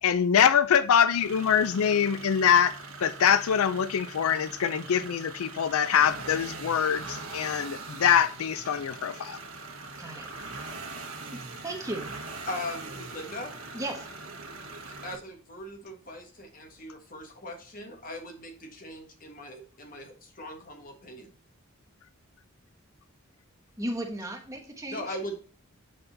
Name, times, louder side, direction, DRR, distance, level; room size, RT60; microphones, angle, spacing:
voice 1, 0.0-2.7 3.0-9.4, left 8 dB, 85° left, 0.4 m, -24 dB
sound 1, 1.1-15.2, right 3 dB, 85° right, 1.4 m, -41 dB
voice 2, 10.0-10.3 11.3-12.2 13.7-14.1 23.8-25.4, right 1 dB, 15° right, 1.1 m, -36 dB
voice 3, 12.5-13.5 15.0-21.3 24.9-25.4, left 1 dB, 40° left, 1.4 m, -39 dB
7.8 x 4.1 x 3.9 m
head